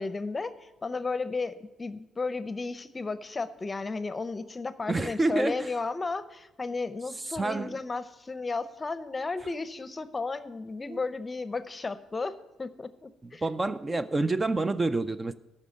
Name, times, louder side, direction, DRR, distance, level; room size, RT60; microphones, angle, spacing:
voice 1, 0.0-13.4 13.9-14.0, left 3 dB, 25° left, 13 dB, 0.6 m, -34 dB
voice 2, 4.9-5.7 7.3-7.8 10.9-11.0 13.4-15.3, right 2 dB, 25° right, 11 dB, 0.4 m, -28 dB
13.5 x 5.4 x 6.5 m, 0.99 s
cardioid pair, 90°, 0 cm